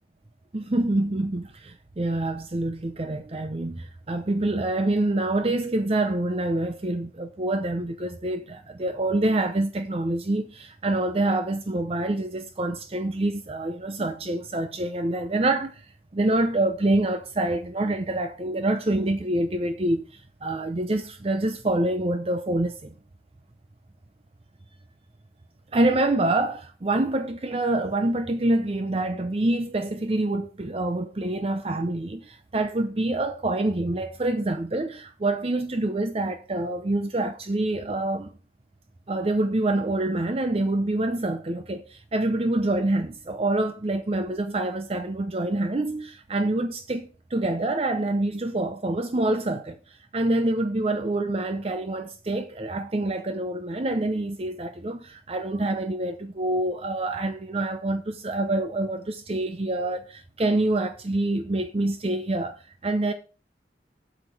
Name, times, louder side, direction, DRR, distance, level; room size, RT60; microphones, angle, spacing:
voice 1, 0.5-15.8 16.1-22.9 25.7-38.3 39.1-49.8 50.1-62.6 62.8-63.1, right 2 dB, 35° right, 0.6 m, -26 dB
8.2 x 5.0 x 5.9 m
head